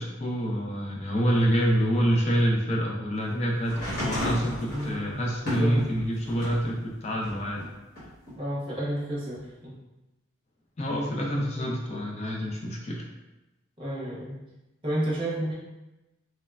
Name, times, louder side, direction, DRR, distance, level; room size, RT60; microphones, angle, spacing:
voice 1, 0.0-7.7 10.8-13.1, equal, 30° left, -1 dB, 0.4 m, -27 dB
sound 1, 3.6-6.7 7.2-8.3 9.3-9.4, equal, 50° left, 1.1 m, -33 dB
voice 2, 4.7-5.9 8.4-9.8 11.5-11.7 13.8-14.4 14.8-15.5, right 1 dB, 25° right, -7 dB, 0.7 m, -31 dB
3.0 x 2.1 x 2.3 m, 1.0 s
head